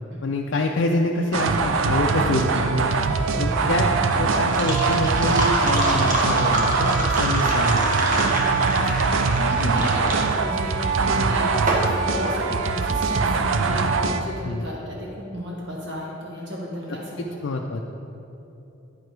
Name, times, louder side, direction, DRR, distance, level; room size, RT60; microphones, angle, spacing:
voice 1, 0.2-3.9 4.2-7.9 9.6-9.9 14.4-14.7 17.2-17.8, left 2 dB, 70° left, 0 dB, 0.4 m, -26 dB
sound 1, 1.3-14.2, right 4 dB, 85° right, 0.4 m, -22 dB
sound 2, 3.3-13.2, right 1 dB, 45° right, 1.0 m, -27 dB
voice 2, 3.3-3.7 8.4-17.4, equal, 65° right, -4 dB, 1.3 m, -34 dB
9.6 x 4.7 x 4.6 m, 3.0 s
head